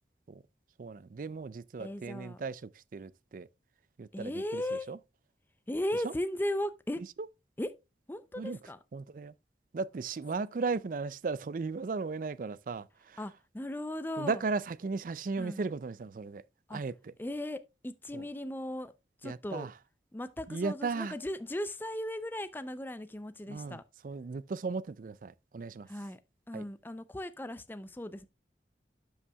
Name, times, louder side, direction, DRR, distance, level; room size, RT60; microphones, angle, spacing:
voice 1, 0.8-3.5 4.0-4.6 4.9-5.0 6.0-6.1 8.4-8.6 8.9-9.3 9.7-13.2 14.2-16.4 16.7-17.1 18.1-18.3 19.2-19.7 20.5-21.2 23.5-25.9 26.5-26.6, right 4 dB, 50° right, 0.4 m, -36 dB
voice 2, 1.8-2.4 4.1-4.9 5.7-7.0 7.6-7.7 8.1-8.8 13.2-14.4 15.4-15.6 16.7-16.8 17.2-18.9 19.2-19.7 20.1-23.8 25.9-26.2 26.5-28.3, left 1 dB, 10° left, 0.4 m, -37 dB
12.5 x 5.5 x 2.2 m
head